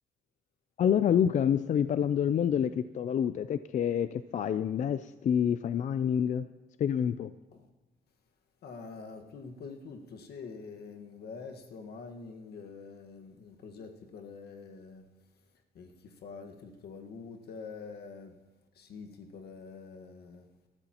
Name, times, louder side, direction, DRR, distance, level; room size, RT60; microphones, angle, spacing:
voice 1, 0.8-6.5 6.8-7.3, left 8 dB, 50° left, 0.4 m, -27 dB
voice 2, 8.6-15.0 15.7-18.3 18.7-20.5, left 4 dB, 80° left, 1.5 m, -46 dB
20.0 x 13.0 x 2.9 m
cardioid pair, 140°, 16 cm